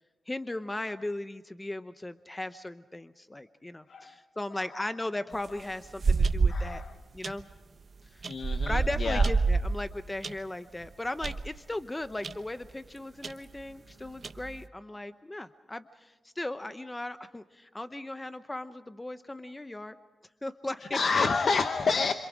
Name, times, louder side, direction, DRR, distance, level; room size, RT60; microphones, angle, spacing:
voice 1, 0.3-6.8 7.1-7.5 8.1-8.2 8.7-19.9 20.4-21.3, left 1 dB, 15° left, 11 dB, 0.8 m, -37 dB
voice 2, 3.9-4.2 4.5-4.8 6.5-6.9 8.3-9.3 20.8-22.1, left 4 dB, 65° left, 8 dB, 1.0 m, -29 dB
sound 1, 5.3-6.8 7.2-7.5 8.2-10.3 10.8-10.9 11.2-11.5 12.2-12.4 12.6-12.7 13.2-13.3 14.1-14.6, right 4 dB, 50° right, 1.0 m, -27 dB
27.0 x 26.5 x 5.0 m, 1.1 s
cardioid pair, 80°, 0 cm